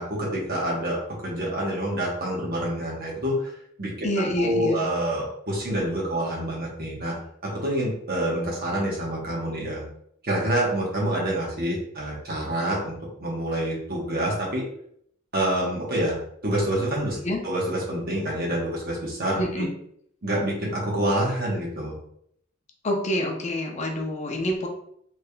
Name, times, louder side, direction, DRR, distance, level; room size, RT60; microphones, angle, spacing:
voice 1, 0.0-3.5 3.8-4.1 4.4-7.1 7.4-9.8 10.2-14.6 15.3-16.1 16.4-17.2 17.4-19.6 20.2-21.9, right 1 dB, 45° right, -4 dB, 1.0 m, -27 dB
voice 2, 4.0-4.8 17.2-17.4 19.4-19.7 22.8-24.7, left 1 dB, 35° left, 2 dB, 0.6 m, -27 dB
4.0 x 3.2 x 2.2 m, 0.69 s
head